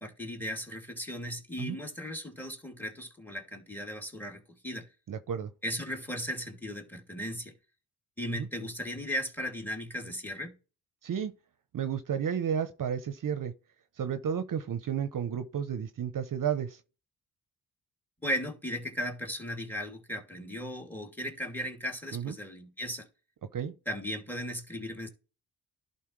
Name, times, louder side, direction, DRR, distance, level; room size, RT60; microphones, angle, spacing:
voice 1, 0.0-4.9 5.6-7.5 8.2-10.6 18.2-23.1 23.9-25.1, equal, 5° left, 2.4 m, -36 dB
voice 2, 5.1-5.5 8.3-8.5 11.0-11.3 11.7-13.5 14.0-16.8 22.1-22.3 23.5-23.7, right 8 dB, 50° right, 0.8 m, -32 dB
11.0 x 4.2 x 3.2 m
cardioid pair, 65°, 41 cm